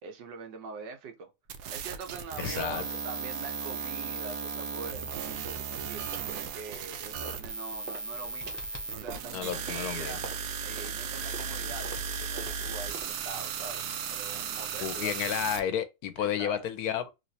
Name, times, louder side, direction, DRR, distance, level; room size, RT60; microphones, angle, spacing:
voice 1, 0.0-1.3 1.7-8.6 8.9-10.2 10.6-13.8 14.1-15.1 16.2-16.7, right 4 dB, 90° right, 1.5 m, -43 dB
sound 1, 1.5-15.6, right 6 dB, 75° right, 1.1 m, -36 dB
voice 2, 2.4-2.8 9.3-10.2 14.8-17.1, left 9 dB, 70° left, 1.0 m, -31 dB
sound 2, 5.5-5.7 6.1-6.4 6.7-7.5 7.8-13.4, right 5 dB, 50° right, 1.0 m, -46 dB
sound 3, 7.5-9.2 11.0-13.6, left 2 dB, 30° left, 0.5 m, -50 dB
3.1 x 3.1 x 2.7 m
omnidirectional pair, 1.8 m